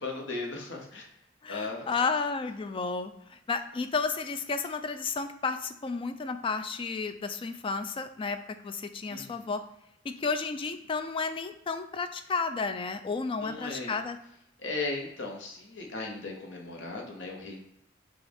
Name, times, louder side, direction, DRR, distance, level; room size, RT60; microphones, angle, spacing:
voice 1, 0.0-1.1 1.5-2.0 9.1-9.5 13.4-13.9 14.6-17.6, left 3 dB, 70° left, 1 dB, 1.0 m, -37 dB
voice 2, 1.4-8.4 8.6-9.6 10.0-14.2, left 4 dB, 25° left, 9 dB, 0.3 m, -32 dB
6.0 x 2.4 x 3.5 m, 0.80 s
head